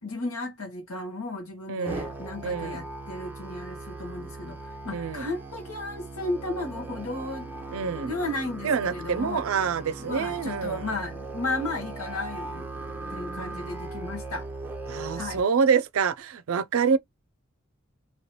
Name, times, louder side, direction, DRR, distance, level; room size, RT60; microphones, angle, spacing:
voice 1, 0.0-7.5 8.0-9.4 10.0-12.7 13.1-14.5 15.1-15.4, left 2 dB, 85° left, 1.3 m, -34 dB
voice 2, 1.7-2.1 2.4-2.8 4.9-5.3 7.7-8.1 8.6-10.9 14.9-17.0, right 6 dB, 75° right, 0.4 m, -26 dB
Musical instrument, 1.9-15.4, right 2 dB, 10° right, 0.5 m, -38 dB
2.9 x 2.8 x 3.1 m
head